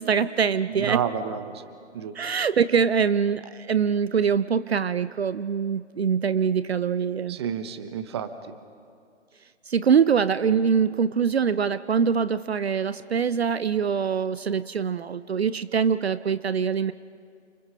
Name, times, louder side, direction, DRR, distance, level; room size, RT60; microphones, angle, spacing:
voice 1, 0.0-1.0 2.1-7.4 9.7-16.9, right 6 dB, 55° right, 15 dB, 0.6 m, -23 dB
voice 2, 0.7-1.5 1.9-2.1 7.3-8.3, right 8 dB, 20° right, 11 dB, 0.8 m, -29 dB
29.5 x 25.5 x 5.5 m, 2.3 s
figure-of-eight pair, 145°, 37 cm